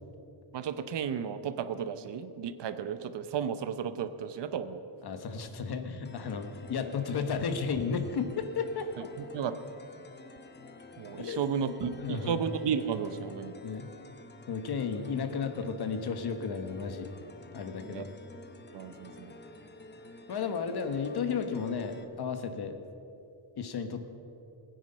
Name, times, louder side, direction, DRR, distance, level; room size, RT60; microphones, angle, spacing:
voice 1, 0.5-4.8 9.2-9.5 11.0-13.5 17.8-18.0 18.7-19.3, right 7 dB, 60° right, 11 dB, 0.8 m, -33 dB
voice 2, 5.0-8.8 11.2-12.4 13.6-13.9 14.5-17.1 17.5-18.1 20.3-22.8 23.6-24.0, left 5 dB, 50° left, 8 dB, 1.2 m, -33 dB
sound 1, 6.0-22.0, left 3 dB, 20° left, 0.8 m, -50 dB
21.0 x 9.4 x 5.5 m, 2.7 s
wide cardioid pair, 160°, 48 cm